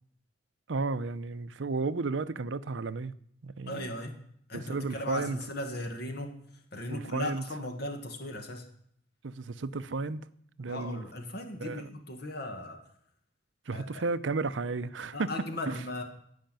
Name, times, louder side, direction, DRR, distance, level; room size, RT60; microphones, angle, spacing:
voice 1, 0.7-3.1 3.4-3.9 4.5-5.4 6.9-7.4 9.2-10.3 10.6-11.0 11.6-11.9 13.7-15.3 15.7-15.8, right 3 dB, 85° right, 0.6 m, -33 dB
voice 2, 3.7-6.4 6.7-8.7 10.7-12.8 13.7-14.0 15.1-16.0, left 1 dB, 60° left, 1.7 m, -37 dB
16.0 x 5.9 x 9.0 m
head